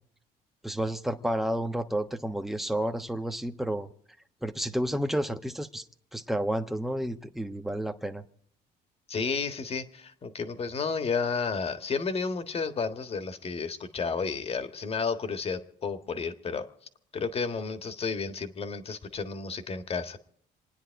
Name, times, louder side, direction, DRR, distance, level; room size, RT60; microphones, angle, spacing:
voice 1, 0.6-3.9 4.4-5.8 6.1-8.2, right 1 dB, ahead, 7 dB, 1.1 m, -31 dB
voice 2, 9.1-16.7 17.1-20.2, left 5 dB, 35° left, 9 dB, 1.6 m, -32 dB
28.0 x 9.8 x 4.6 m, 0.64 s
cardioid pair, 110°, 17 cm